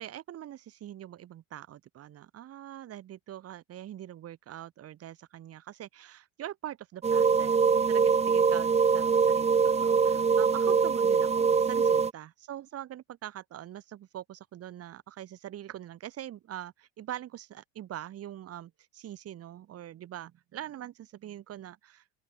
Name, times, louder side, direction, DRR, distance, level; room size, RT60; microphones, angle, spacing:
voice 1, 0.0-22.2, right 12 dB, 45° right, 5.9 m, -43 dB
sound 1, 7.0-12.1, right 6 dB, 20° right, 1.2 m, -23 dB
open air
cardioid pair, 135°, 33 cm